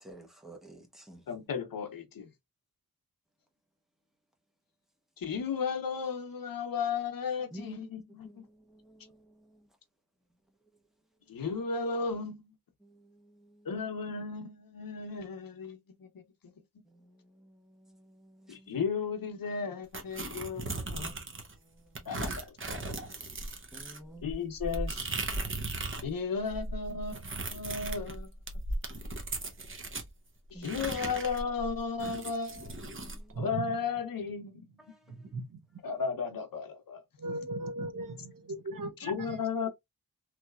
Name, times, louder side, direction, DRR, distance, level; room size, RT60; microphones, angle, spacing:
voice 1, 0.0-1.2 7.5-7.8 8.2-9.2 12.8-13.7 16.9-18.7 20.3-20.6 20.9-21.4 21.7-22.1 23.7-24.3 30.5-30.7 33.0-33.4 34.9-35.0, right 1 dB, ahead, 0.9 m, -52 dB
voice 2, 1.3-2.3 5.2-8.5 11.3-12.5 13.6-16.1 18.5-21.1 22.1-22.8 24.2-25.0 26.0-28.3 30.5-32.8 33.4-34.8 35.8-37.0 39.0-39.7, left 5 dB, 65° left, 0.9 m, -35 dB
sound 1, 19.9-21.6 22.0-26.1 26.4-30.1 30.6-33.2, right 2 dB, 35° right, 0.8 m, -37 dB
voice 3, 33.3-33.7 35.2-35.6 37.2-39.7, right 2 dB, 60° right, 0.9 m, -38 dB
3.1 x 2.8 x 2.4 m
wide cardioid pair, 120°, 37 cm